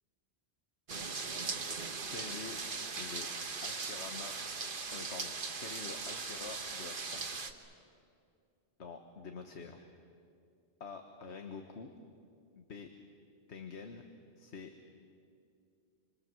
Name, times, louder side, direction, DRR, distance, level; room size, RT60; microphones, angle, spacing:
sound 1, 0.9-7.5, right 4 dB, 50° right, 1.4 m, -39 dB
voice 1, 2.1-2.6 3.0-3.3 3.6-4.3 4.9-7.4 8.8-9.9 10.8-11.9 12.6-12.9 13.5-14.0 14.4-14.7, left 5 dB, 80° left, 5 dB, 1.6 m, -47 dB
26.5 x 26.5 x 7.6 m, 2.4 s
omnidirectional pair, 1.1 m